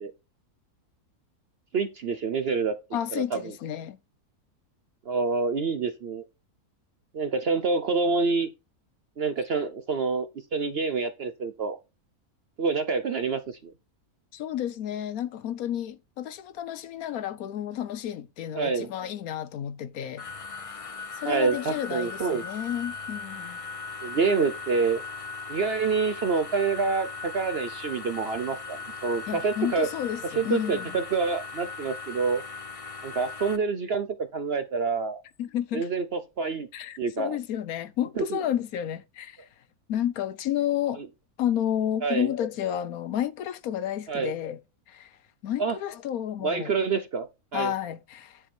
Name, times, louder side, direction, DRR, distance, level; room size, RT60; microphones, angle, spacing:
voice 1, 1.7-2.7 3.1-3.5 5.1-6.3 7.1-8.5 9.2-10.3 10.5-11.8 12.6-13.7 18.5-18.9 21.2-22.4 24.0-25.0 25.5-29.9 30.3-32.4 33.0-35.2 35.7-36.7 37.0-37.4 38.2-38.4 41.0-41.1 42.0-42.3 44.1-44.3 45.6-45.8 46.4-47.7, right 4 dB, 55° right, 0.7 m, -27 dB
voice 2, 2.9-4.0 14.3-20.3 20.6-20.8 21.2-23.6 29.3-30.9 35.4-35.9 36.7-39.4 39.9-41.0 41.4-44.6 44.9-45.1 45.4-46.8 47.5-48.4, left 10 dB, 75° left, 1.1 m, -31 dB
sound 1, 20.2-33.6, left 4 dB, 35° left, 0.5 m, -38 dB
9.9 x 4.9 x 4.3 m
omnidirectional pair, 1.6 m